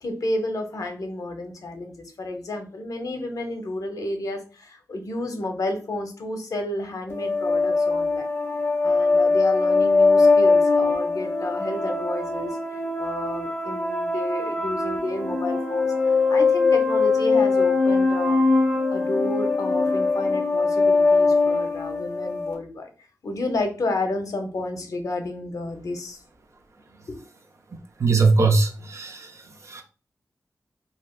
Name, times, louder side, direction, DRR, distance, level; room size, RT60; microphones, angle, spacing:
voice 1, 0.0-8.3 8.8-12.6 13.0-18.4 18.9-22.9 23.2-26.2 27.1-27.2, left 2 dB, 70° left, 5 dB, 0.7 m, -31 dB
sound 1, 7.1-22.5, left 3 dB, 40° left, 1.2 m, -21 dB
voice 2, 28.0-29.3 29.6-29.8, right 4 dB, 55° right, 3 dB, 0.6 m, -20 dB
3.3 x 2.7 x 2.4 m, 0.35 s
wide cardioid pair, 95°, 6 cm